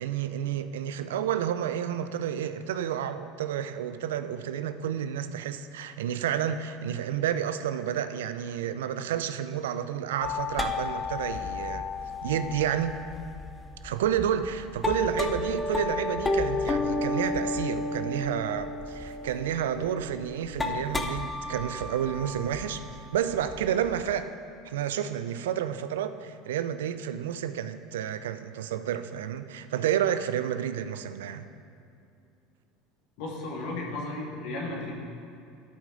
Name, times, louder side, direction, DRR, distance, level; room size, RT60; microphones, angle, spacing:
voice 1, 0.0-11.9 12.2-12.9 13.8-22.8 23.1-24.3 24.6-31.5, right 9 dB, 90° right, 11 dB, 0.4 m, -30 dB
sound 1, 10.2-24.1, left 3 dB, 15° left, 0.6 m, -32 dB
voice 2, 33.2-34.9, left 2 dB, 70° left, -2 dB, 1.6 m, -34 dB
12.5 x 5.0 x 3.9 m, 2.5 s
supercardioid pair, 100°, 0 cm